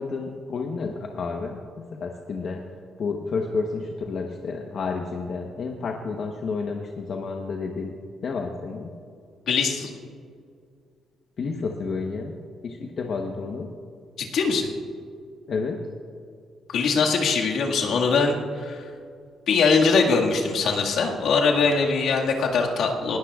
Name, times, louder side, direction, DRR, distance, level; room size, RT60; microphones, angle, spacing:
voice 1, 0.0-2.6 3.0-8.0 8.2-8.9 11.4-12.3 12.6-13.7 15.5-15.8, left 4 dB, 55° left, 2 dB, 1.0 m, -30 dB
voice 2, 9.5-9.9 14.2-14.7 16.7-18.9 19.5-23.2, left 4 dB, 75° left, 0 dB, 1.9 m, -22 dB
20.0 x 16.5 x 2.4 m, 2.2 s
cardioid pair, 90°, 0 cm